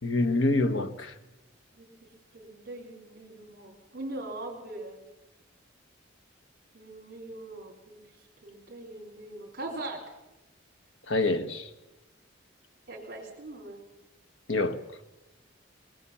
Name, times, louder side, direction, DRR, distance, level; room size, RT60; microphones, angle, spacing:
voice 1, 0.0-1.1 11.1-11.7 14.5-14.8, left 2 dB, 70° left, 9 dB, 1.4 m, -26 dB
voice 2, 1.7-5.0 6.7-10.0 12.9-13.8, right 2 dB, 50° right, -1 dB, 3.4 m, -41 dB
21.0 x 18.5 x 7.2 m, 0.99 s
head